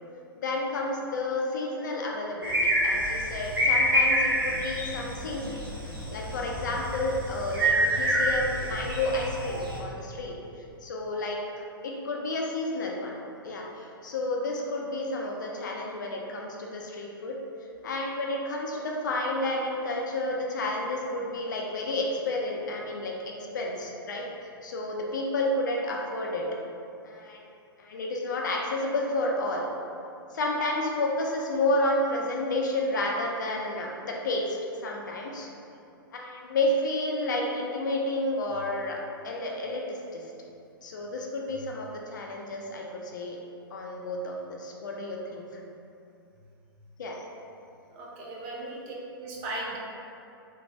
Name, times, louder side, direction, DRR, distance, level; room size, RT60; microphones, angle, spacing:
voice 1, 0.4-5.6 6.1-10.3 10.8-11.4 11.8-13.2 13.4-17.4 17.8-24.2 24.6-26.6 27.0-27.5 27.8-29.7 30.3-35.5 36.1-40.2 40.8-43.4 43.7-45.5 47.0-47.2, left 2 dB, 55° left, -1 dB, 0.4 m, -31 dB
sound 1, 2.4-9.8, equal, 70° right, 0.9 m, -27 dB
voice 2, 47.9-49.8, right 2 dB, 30° right, -3 dB, 0.5 m, -37 dB
3.3 x 2.1 x 2.7 m, 2.6 s
figure-of-eight pair, 110°, 12 cm